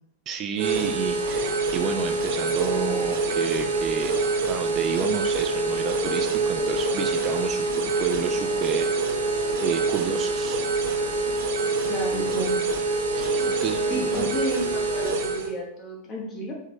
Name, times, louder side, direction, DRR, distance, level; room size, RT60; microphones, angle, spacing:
voice 1, 0.3-4.1 4.4-9.3 9.6-10.6 13.1-14.3, right 8 dB, 30° right, 6 dB, 0.4 m, -31 dB
sound 1, 0.6-15.5, right 3 dB, 60° right, 0.7 m, -25 dB
voice 2, 11.9-12.6 13.9-16.5, equal, 30° left, -1 dB, 1.4 m, -32 dB
4.9 x 3.2 x 3.0 m, 0.73 s
figure-of-eight pair, 90°, 0 cm